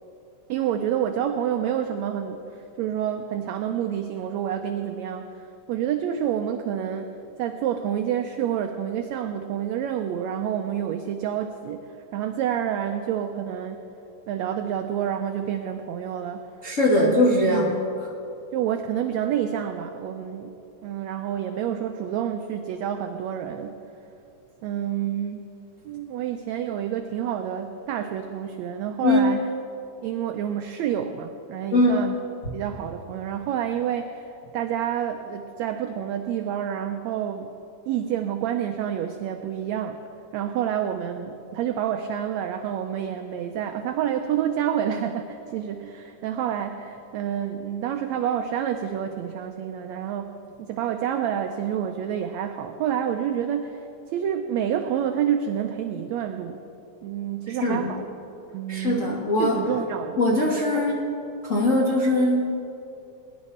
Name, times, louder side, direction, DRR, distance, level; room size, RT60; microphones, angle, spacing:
voice 1, 0.5-13.8 14.3-16.5 16.9-17.6 18.5-20.5 20.8-23.8 24.6-25.5 25.8-29.4 30.0-32.2 32.5-37.5 37.9-40.0 40.3-56.6 57.0-58.1 58.5-60.2 60.7-61.0, right 9 dB, 90° right, 6 dB, 1.5 m, -28 dB
voice 2, 16.6-17.8 29.0-29.2 31.7-32.0 57.6-57.9 58.7-59.7 60.2-61.1 61.4-62.6, left 1 dB, 85° left, -3 dB, 0.7 m, -21 dB
20.0 x 10.5 x 4.3 m, 2.8 s
omnidirectional pair, 3.7 m